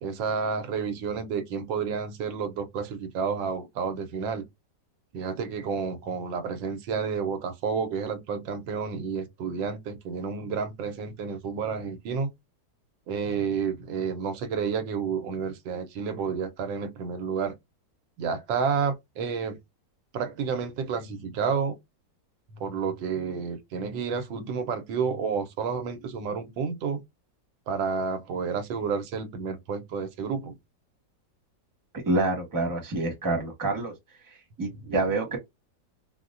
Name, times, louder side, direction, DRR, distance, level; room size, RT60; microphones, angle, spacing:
voice 1, 0.0-4.4 5.1-12.3 13.1-17.5 18.2-19.6 20.1-21.7 22.5-27.0 27.7-30.6 34.8-34.9, right 6 dB, 90° right, 1.4 m, -30 dB
voice 2, 32.0-33.9 34.6-35.4, right 2 dB, 15° right, 0.8 m, -27 dB
4.0 x 2.1 x 2.4 m
omnidirectional pair, 2.0 m